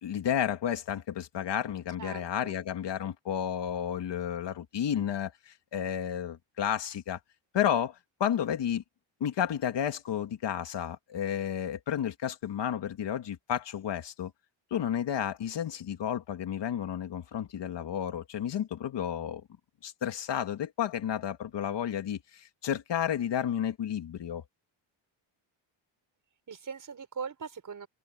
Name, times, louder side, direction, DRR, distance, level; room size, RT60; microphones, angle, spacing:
voice 1, 0.0-7.2 7.5-8.8 9.2-14.3 14.7-19.4 19.8-24.4, left 9 dB, 55° left, 2.3 m, -32 dB
voice 2, 2.0-2.6 26.5-27.9, right 6 dB, 40° right, 5.5 m, -40 dB
open air
wide cardioid pair, 165°, 50 cm